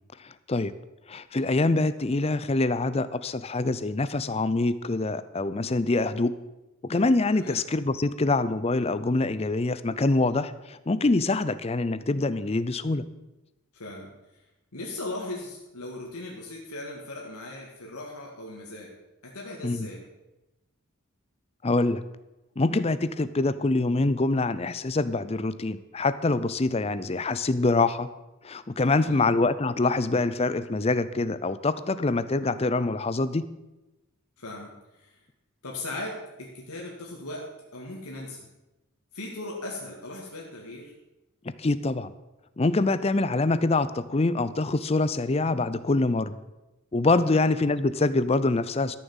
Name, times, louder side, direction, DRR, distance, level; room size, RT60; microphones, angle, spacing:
voice 1, 0.2-0.7 1.1-6.3 6.8-13.0 19.6-19.9 21.6-22.0 22.6-28.1 28.4-33.5 41.6-42.1 42.6-46.4 46.9-49.0, left 2 dB, 25° left, 14 dB, 0.5 m, -25 dB
voice 2, 13.7-14.1 14.7-18.9 19.2-20.0 28.9-29.2 34.4-35.2 35.6-37.5 37.7-38.5 39.1-40.9 47.2-47.4, left 2 dB, 90° left, -2 dB, 2.1 m, -38 dB
13.0 x 7.1 x 7.2 m, 1.0 s
head